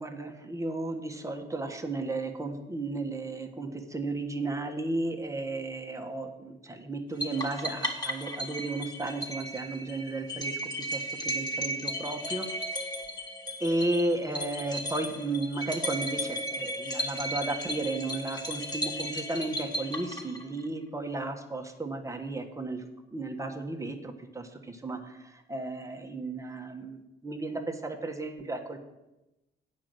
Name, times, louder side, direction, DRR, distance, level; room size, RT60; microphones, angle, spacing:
voice 1, 0.0-12.5 12.7-12.9 13.6-22.8 23.1-27.0 27.2-28.8, right 2 dB, 15° right, 3 dB, 1.3 m, -34 dB
sound 1, 7.2-20.6, equal, 20° left, 1.9 m, -35 dB
8.4 x 5.4 x 7.8 m, 0.99 s
cardioid pair, 90°, 20 cm